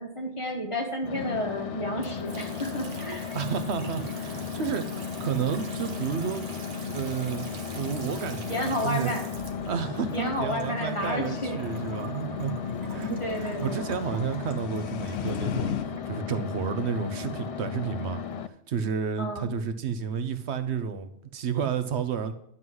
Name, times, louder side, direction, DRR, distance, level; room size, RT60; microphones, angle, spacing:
voice 1, 0.0-3.3 8.5-9.3 10.1-11.6 13.2-13.8 19.2-19.5, equal, 25° left, 0 dB, 1.5 m, -31 dB
sound 1, 1.0-18.5, left 6 dB, 60° left, 0.3 m, -35 dB
Water tap faucet / Sink (filling or washing) / Trickle dribble, 2.0-16.1, right 4 dB, 50° right, 1.0 m, -45 dB
voice 2, 3.3-6.4 6.8-7.5 7.7-9.1 9.7-12.5 12.9-15.7 16.0-18.2 18.7-22.3, right 7 dB, 75° right, 10 dB, 1.0 m, -31 dB
sound 2, 11.5-15.9, left 9 dB, 75° left, 0.9 m, -36 dB
11.0 x 3.9 x 7.6 m, 0.72 s
omnidirectional pair, 1.2 m